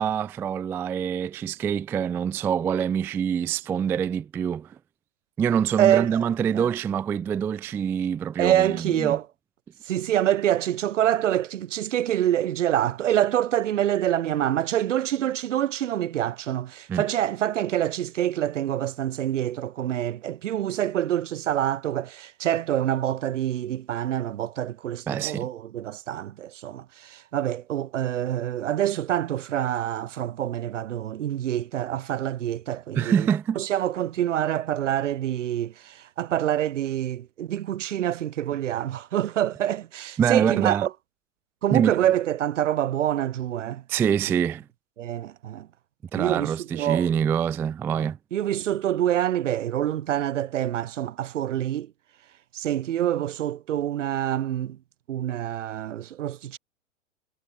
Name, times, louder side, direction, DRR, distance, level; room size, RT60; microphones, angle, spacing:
voice 1, 0.0-4.8 5.4-9.2 16.9-17.0 25.1-25.5 32.9-33.6 40.2-40.9 41.7-42.0 43.9-44.6 46.1-48.2, right 8 dB, 5° right, 0.3 m, -25 dB
voice 2, 5.8-6.2 6.5-6.7 8.4-9.3 9.9-33.3 33.6-40.9 41.6-43.8 45.0-45.7 46.1-47.1 47.9-51.9 52.5-54.8 55.1-56.6, right 11 dB, 65° right, 3.8 m, -26 dB
hypercardioid pair, 110°, 39 cm